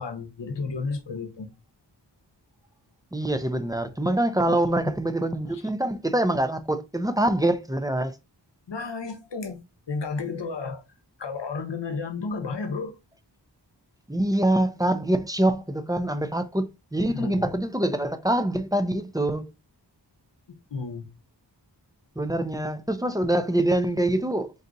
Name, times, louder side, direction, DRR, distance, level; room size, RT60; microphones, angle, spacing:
voice 1, 0.0-1.5 4.4-4.6 4.8-4.9 5.5-5.6 7.1-7.2 8.7-10.8 11.2-13.0 17.1-17.5 20.5-21.1, left 4 dB, 75° left, 0.8 m, -33 dB
voice 2, 3.1-8.2 14.1-19.5 22.2-24.5, right 1 dB, 10° right, 0.5 m, -25 dB
4.0 x 2.4 x 3.9 m
wide cardioid pair, 55°, 43 cm